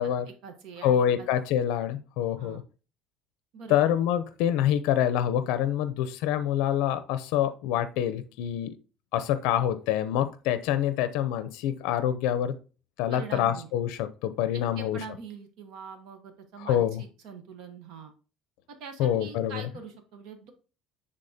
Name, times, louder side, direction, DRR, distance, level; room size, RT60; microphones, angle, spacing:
voice 1, 0.0-1.3 2.4-2.6 3.5-3.9 13.1-13.7 14.5-18.1 18.7-20.5, right 6 dB, 60° right, 6 dB, 1.0 m, -44 dB
voice 2, 0.8-2.6 3.7-8.7 9.1-12.5 13.0-15.0 16.6-17.0 19.0-19.7, left 10 dB, 90° left, 11 dB, 0.5 m, -26 dB
10.0 x 3.7 x 2.7 m, 0.35 s
cardioid pair, 180°, 0 cm